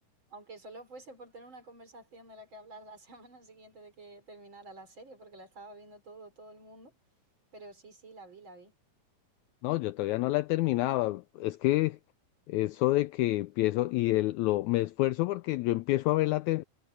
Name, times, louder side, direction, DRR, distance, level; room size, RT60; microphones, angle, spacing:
voice 1, 0.3-7.0 7.5-8.7, right 2 dB, 35° right, 4.7 m, -50 dB
voice 2, 9.6-12.0 12.5-16.6, left 17 dB, 90° left, 1.6 m, -28 dB
omnidirectional pair, 3.9 m